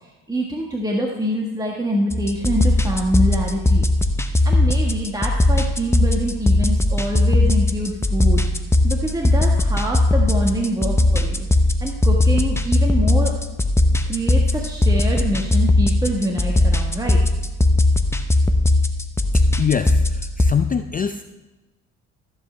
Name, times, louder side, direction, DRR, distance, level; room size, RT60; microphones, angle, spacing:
voice 1, 0.0-3.8 4.4-8.5 8.8-11.5 11.8-13.4 14.1-17.2, right 1 dB, 10° right, -1 dB, 1.5 m, -25 dB
sound 1, 2.1-20.5, left 2 dB, 5° left, 0.9 m, -19 dB
voice 2, 19.6-20.0 20.4-21.2, left 7 dB, 25° left, 9 dB, 0.4 m, -22 dB
14.0 x 7.6 x 3.4 m, 1.1 s
supercardioid pair, 65°, 37 cm